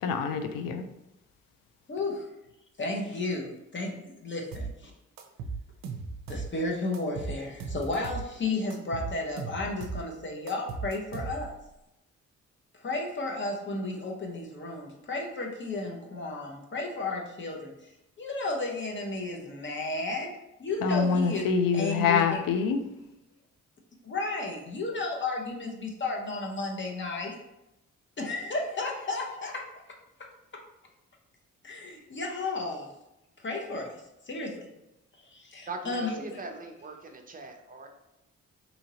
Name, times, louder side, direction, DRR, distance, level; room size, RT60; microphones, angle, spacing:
voice 1, 0.0-0.8 20.8-22.8, left 6 dB, 80° left, 7 dB, 0.5 m, -25 dB
voice 2, 1.9-2.3 2.8-4.9 6.3-11.5 12.7-17.9 18.2-21.5 21.7-22.4 24.0-27.4 28.2-29.6 31.6-32.9 33.4-34.7 35.3-36.4, left 2 dB, 35° left, 1 dB, 0.7 m, -33 dB
sound 1, 4.5-4.8 5.2-6.5 6.9-8.3 8.7-10.1 10.5-11.6, right 4 dB, 70° right, 0.5 m, -37 dB
voice 3, 35.7-37.9, right 3 dB, 25° right, 4 dB, 0.6 m, -40 dB
2.8 x 2.7 x 2.8 m, 0.90 s
supercardioid pair, 60°, 34 cm